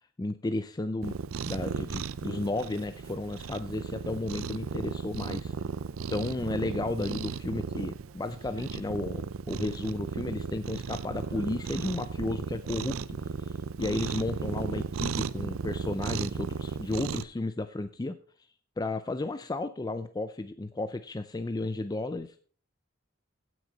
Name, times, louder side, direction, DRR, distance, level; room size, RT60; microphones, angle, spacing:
voice 1, 0.2-1.2 1.4-5.5 6.1-18.2 18.8-22.3, left 2 dB, 20° left, 10 dB, 0.4 m, -33 dB
Cat, 1.0-17.2, right 5 dB, 85° right, 0.5 m, -35 dB
16.0 x 6.2 x 4.0 m, 0.42 s
head